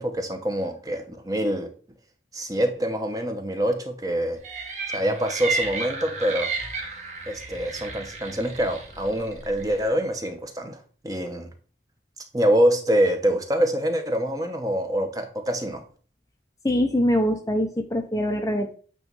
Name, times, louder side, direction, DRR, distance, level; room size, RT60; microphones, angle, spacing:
voice 1, 0.0-1.7 2.3-4.4 4.9-6.5 7.3-11.5 12.3-15.8, equal, 20° right, 5 dB, 0.9 m, -25 dB
sound 1, 4.4-9.9, right 4 dB, 40° right, 1.3 m, -33 dB
voice 2, 16.6-18.8, equal, 20° left, 5 dB, 0.6 m, -23 dB
8.7 x 3.1 x 5.3 m, 0.41 s
head